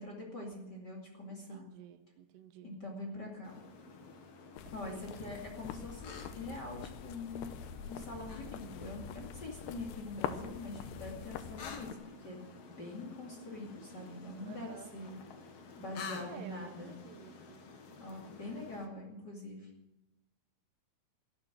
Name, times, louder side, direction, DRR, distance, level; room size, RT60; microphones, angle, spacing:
voice 1, 0.0-1.6 2.6-3.6 4.7-12.4 12.7-15.1 15.8-16.9 18.0-19.7, left 2 dB, 30° left, 0 dB, 2.4 m, -44 dB
voice 2, 1.3-2.7 4.8-5.0 14.4-14.9 16.3-17.6, right 9 dB, 85° right, 9 dB, 3.2 m, -52 dB
sound 1, 3.4-18.9, left 4 dB, 50° left, 1.9 m, -51 dB
sound 2, 4.6-11.9, left 9 dB, 85° left, 3.0 m, -44 dB
13.5 x 12.0 x 7.7 m, 0.95 s
omnidirectional pair, 4.7 m